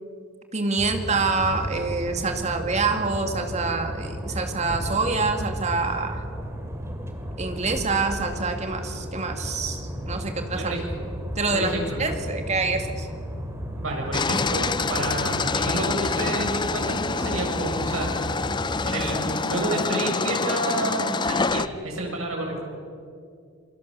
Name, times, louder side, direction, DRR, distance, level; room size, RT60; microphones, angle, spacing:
voice 1, 0.5-6.2 7.4-10.7 11.4-11.7 12.0-13.1, right 3 dB, 35° right, 5 dB, 2.3 m, -26 dB
sound 1, 0.8-19.2, equal, 15° right, 2.6 m, -34 dB
voice 2, 10.5-10.8 11.5-12.0 13.8-18.1 18.8-22.5, right 2 dB, 85° right, -1 dB, 7.7 m, -29 dB
sound 2, 14.1-21.7, left 4 dB, 20° left, 0.5 m, -26 dB
28.0 x 23.5 x 7.0 m, 2.3 s
head